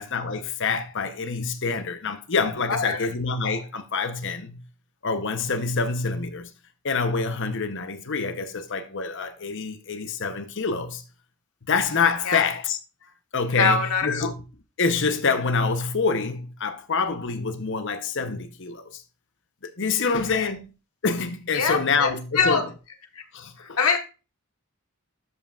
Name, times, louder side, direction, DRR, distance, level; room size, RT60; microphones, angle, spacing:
voice 1, 0.0-4.6 5.0-6.5 6.8-11.0 11.6-14.4 14.8-19.0 19.6-20.7 21.0-22.6 23.3-23.8, left 4 dB, 55° left, 0.9 m, -26 dB
voice 2, 2.7-3.1 12.2-12.4 13.5-14.3 20.1-20.5 21.5-22.6 23.1-23.2 23.6-24.0, left 5 dB, 80° left, 1.4 m, -24 dB
12.5 x 5.7 x 2.5 m
head